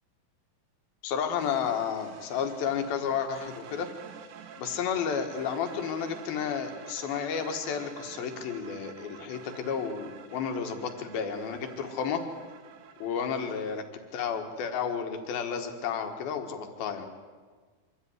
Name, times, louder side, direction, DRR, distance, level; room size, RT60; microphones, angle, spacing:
voice 1, 1.0-3.9 4.6-12.2 13.0-13.8 14.1-17.1, left 7 dB, 65° left, 5 dB, 3.3 m, -32 dB
sound 1, 1.4-13.8, right 8 dB, 65° right, 2.2 m, -49 dB
25.0 x 13.5 x 9.6 m, 1.5 s
omnidirectional pair, 5.0 m